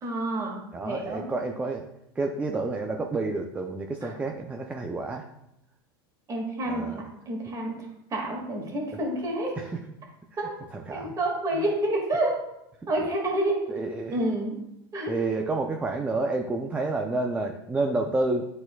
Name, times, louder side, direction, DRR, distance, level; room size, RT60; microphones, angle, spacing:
voice 1, 0.0-1.3 4.0-4.1 6.3-6.9 7.3-9.6 10.4-10.5 10.9-12.4 12.9-13.6 14.1-14.6 14.9-15.1, right 1 dB, 25° right, -1 dB, 2.0 m, -28 dB
voice 2, 0.7-1.9 2.2-5.3 6.7-7.0 9.6-9.7 10.7-11.2 13.7-14.2 15.1-18.4, right 3 dB, 10° right, 3 dB, 0.4 m, -29 dB
10.0 x 4.2 x 2.3 m, 0.84 s
supercardioid pair, 125°, 13 cm